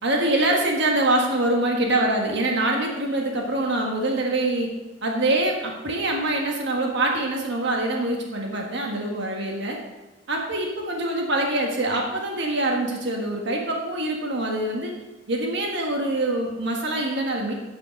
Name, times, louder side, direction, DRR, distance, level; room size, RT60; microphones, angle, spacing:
voice 1, 0.0-4.7 5.0-9.8 10.3-14.9 15.3-17.5, right 1 dB, 60° right, 1 dB, 1.4 m, -24 dB
11.5 x 6.7 x 5.1 m, 1.1 s
head